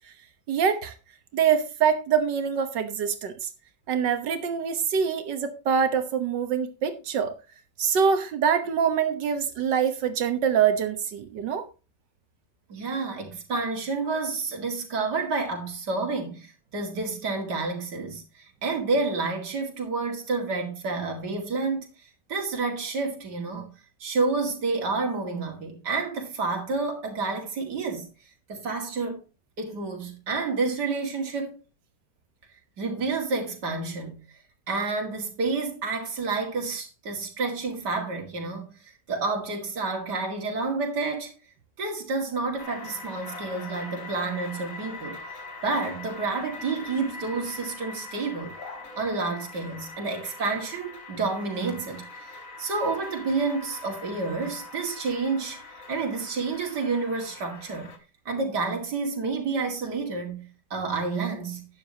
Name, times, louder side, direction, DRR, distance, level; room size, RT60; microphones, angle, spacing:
voice 1, 0.5-0.9 1.3-3.5 3.9-7.3 7.8-11.7, right 7 dB, 90° right, 1.9 m, -24 dB
voice 2, 12.7-21.9 22.3-23.7 24.0-28.1 28.5-29.2 29.6-31.6 32.8-34.2 34.7-41.3 41.8-45.2 45.6-48.5 49.0-57.9 58.3-61.7, right 3 dB, 70° right, 2.8 m, -29 dB
sound 1, 42.6-58.0, left 2 dB, 50° left, 2.0 m, -42 dB
12.0 x 9.3 x 2.9 m
omnidirectional pair, 1.9 m